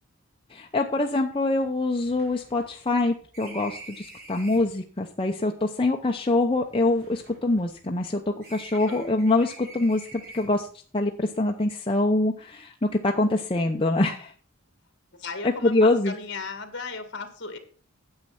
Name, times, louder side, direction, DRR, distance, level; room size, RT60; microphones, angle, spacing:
voice 1, 0.5-10.7 10.9-14.3 15.4-16.1, left 2 dB, 25° left, 2 dB, 0.7 m, -24 dB
sound 1, 0.7-0.8 1.0-1.1 1.5-4.8 5.7-8.1 8.4-10.7, right 1 dB, 45° right, 4.1 m, -47 dB
voice 2, 8.7-9.1 15.2-17.6, left 4 dB, 55° left, 8 dB, 1.9 m, -36 dB
9.5 x 7.4 x 5.9 m, 0.41 s
head